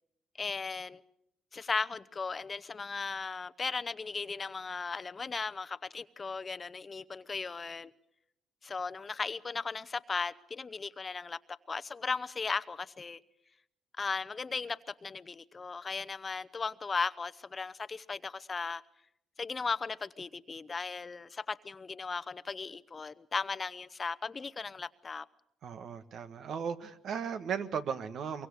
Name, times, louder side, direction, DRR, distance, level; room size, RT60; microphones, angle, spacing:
voice 1, 0.4-1.0 1.5-7.9 8.6-13.2 14.0-18.8 19.4-25.3, left 4 dB, 35° left, 0.8 m, -37 dB
voice 2, 25.6-28.5, right 7 dB, 70° right, 1.6 m, -36 dB
24.0 x 23.5 x 6.6 m
cardioid pair, 90°, 0 cm